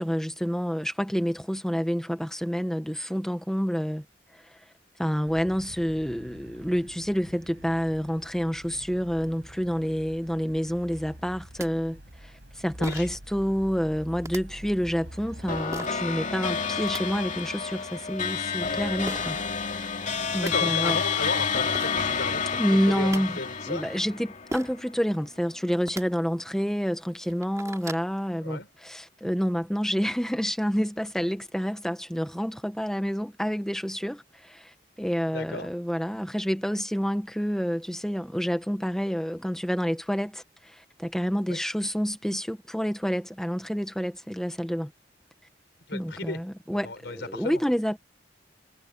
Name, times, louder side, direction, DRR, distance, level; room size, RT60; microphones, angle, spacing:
voice 1, 0.0-4.0 4.3-4.6 5.0-19.4 19.7-21.0 22.5-23.4 23.7-44.9 45.9-48.0, equal, 5° left, 1.1 m, -28 dB
sound 1, 5.3-15.6, equal, 80° right, 4.8 m, -46 dB
sound 2, 11.6-11.7 12.8-13.2 14.2-14.4 15.7-16.0 16.6-17.0 19.1-19.2 20.0-20.1 20.3-20.5 21.4-21.5 21.7-22.0 22.8-23.2 24.5-24.8 25.8-26.0 26.7-26.8 27.2-28.1, right 2 dB, 20° right, 2.6 m, -37 dB
sound 3, 15.5-25.1, left 6 dB, 45° left, 2.4 m, -29 dB
voice 2, 20.4-23.8 28.4-28.7 35.3-35.7 41.5-41.6 45.9-46.4 46.7-47.6, left 2 dB, 70° left, 5.1 m, -34 dB
head